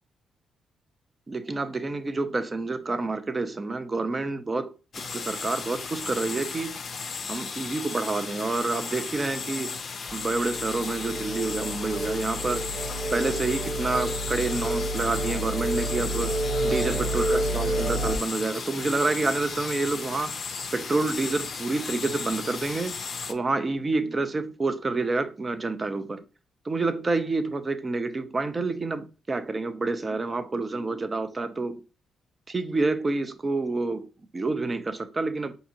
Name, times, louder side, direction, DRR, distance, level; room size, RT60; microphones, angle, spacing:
voice 1, 1.3-6.8 7.3-9.8 10.1-12.7 13.1-16.4 16.6-20.4 20.7-22.9 23.3-26.2 26.6-31.8 32.5-35.6, right 3 dB, 30° right, 0.5 m, -28 dB
sound 1, 4.9-23.3, left 5 dB, 45° left, 0.5 m, -35 dB
sound 2, 10.1-18.2, right 1 dB, 50° right, 1.4 m, -29 dB
4.7 x 2.7 x 2.8 m
cardioid pair, 100°, 0 cm